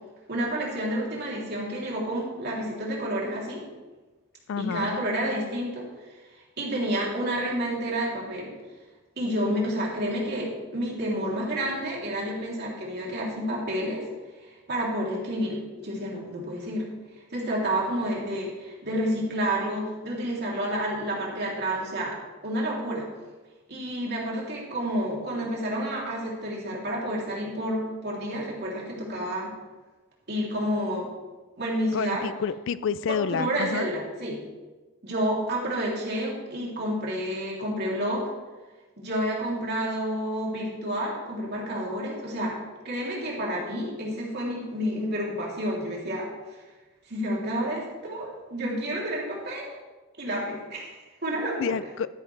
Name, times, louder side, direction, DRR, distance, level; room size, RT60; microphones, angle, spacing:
voice 1, 0.3-3.7 4.6-5.9 6.6-8.5 9.2-14.1 14.5-16.9 17.3-23.1 23.7-29.5 30.3-31.1 31.6-32.3 33.1-34.4 35.0-38.3 39.0-42.6 42.8-46.6 47.1-49.7 50.2-51.8, equal, 50° right, -4 dB, 3.1 m, -30 dB
voice 2, 4.5-5.0 31.9-33.9 51.6-52.1, left 6 dB, 65° left, 17 dB, 0.4 m, -29 dB
12.5 x 11.0 x 3.3 m, 1.2 s
head